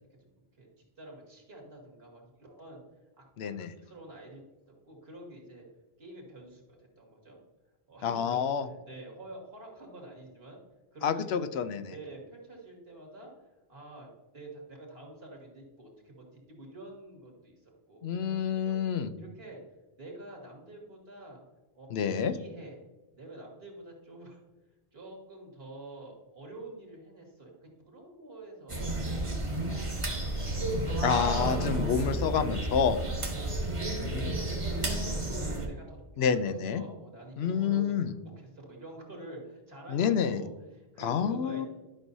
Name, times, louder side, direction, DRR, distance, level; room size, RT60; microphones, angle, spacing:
voice 1, 1.0-2.8 3.2-3.5 3.8-4.4 4.8-5.7 6.0-7.4 7.9-10.6 10.9-11.3 11.9-13.3 13.7-18.8 19.2-19.6 20.0-21.4 21.7-21.9 22.3-22.8 23.1-24.4 24.9-30.7 33.3-37.9 38.2-41.7, right 2 dB, 75° right, -1 dB, 2.3 m, -48 dB
voice 2, 3.4-3.7 8.0-8.7 11.0-11.9 18.0-19.1 21.9-22.4 31.0-33.0 34.0-34.4 36.2-36.8 37.4-38.1 39.9-40.4 41.0-41.7, left 7 dB, 80° left, 11 dB, 0.9 m, -28 dB
sound 1, 28.7-35.7, right 1 dB, 30° right, 1.3 m, -31 dB
11.5 x 6.1 x 2.7 m, 1.1 s
omnidirectional pair, 1.0 m